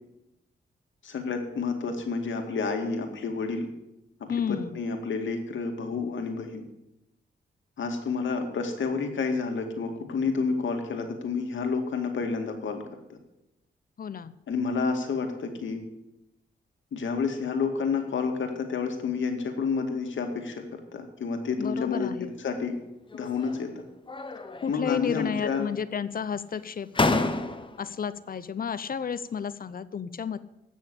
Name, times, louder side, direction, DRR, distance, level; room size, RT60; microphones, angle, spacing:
voice 1, 1.0-3.7 4.3-6.6 7.8-12.8 13.1-13.2 14.5-15.8 16.9-22.8 23.1-23.8 24.7-25.7, left 5 dB, 80° left, 4 dB, 2.3 m, -30 dB
voice 2, 4.3-4.8 14.0-14.3 21.6-22.3 24.6-27.2 27.8-30.4, left 7 dB, 50° left, 15 dB, 0.7 m, -32 dB
sound 1, 23.1-23.7 24.1-24.8 25.1-25.9 26.5-26.6 26.9-27.9, left 3 dB, 25° left, 1.0 m, -30 dB
15.5 x 6.4 x 8.4 m, 0.89 s
wide cardioid pair, 115°, 19 cm